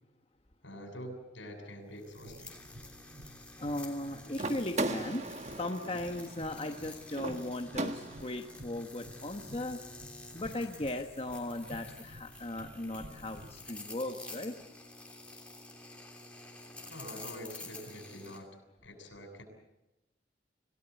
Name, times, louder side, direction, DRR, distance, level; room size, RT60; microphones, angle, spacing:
voice 1, 0.6-2.6 16.9-18.5 18.8-19.4, equal, 85° left, 4 dB, 7.3 m, -45 dB
sound 1, 2.0-18.4, left 2 dB, 5° left, 3.1 m, -50 dB
sound 2, 2.1-13.7, equal, 65° right, 3.6 m, -53 dB
voice 2, 3.6-9.8 10.3-14.6, left 1 dB, 30° left, 4 dB, 1.2 m, -37 dB
sound 3, 4.3-8.5, right 2 dB, 35° right, 1.4 m, -38 dB
26.5 x 18.0 x 8.3 m, 0.91 s
head